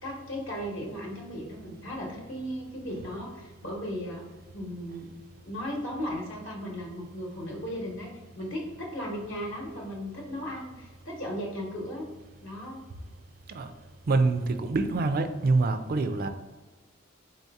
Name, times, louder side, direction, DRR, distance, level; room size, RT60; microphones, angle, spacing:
voice 1, 0.0-4.2 4.5-5.1 5.5-12.1 12.4-12.8, equal, 60° left, -2 dB, 0.9 m, -36 dB
voice 2, 14.1-16.3, right 3 dB, 45° right, 8 dB, 0.4 m, -25 dB
3.9 x 2.7 x 4.6 m, 1.2 s
head